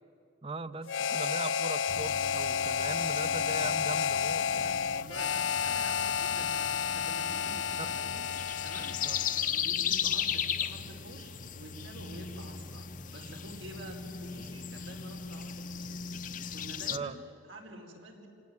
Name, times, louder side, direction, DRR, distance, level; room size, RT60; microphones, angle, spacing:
voice 1, 0.4-4.8 9.0-9.2 16.9-17.2, right 3 dB, 30° right, 14 dB, 0.7 m, -40 dB
Harmonica, 0.9-9.5, left 7 dB, 80° left, 0.6 m, -31 dB
sound 1, 1.9-17.0, left 8 dB, 45° left, 0.8 m, -37 dB
voice 2, 4.9-8.3 8.6-9.0 9.3-18.3, right 1 dB, 85° right, 1 dB, 4.7 m, -48 dB
27.0 x 18.0 x 9.6 m, 2.7 s
head